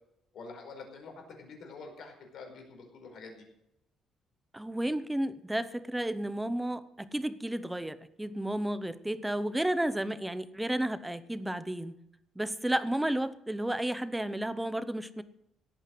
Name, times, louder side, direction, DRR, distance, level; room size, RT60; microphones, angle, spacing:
voice 1, 0.3-3.4, left 4 dB, 55° left, 3 dB, 5.0 m, -47 dB
voice 2, 4.5-12.0 12.4-15.2, right 1 dB, 5° right, 14 dB, 0.8 m, -32 dB
17.0 x 8.9 x 7.8 m, 0.84 s
cardioid pair, 165°, 0 cm